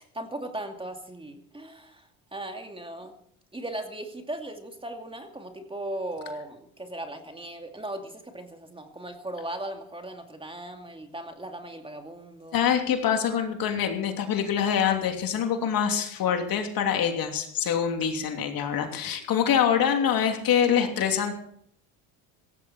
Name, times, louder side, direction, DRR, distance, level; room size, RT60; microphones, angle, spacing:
voice 1, 0.0-3.1 3.5-12.7, right 1 dB, 15° right, 4 dB, 2.5 m, -38 dB
voice 2, 12.5-21.3, left 8 dB, 55° left, 4 dB, 3.0 m, -25 dB
17.0 x 15.0 x 4.4 m, 0.68 s
supercardioid pair, 85°, 42 cm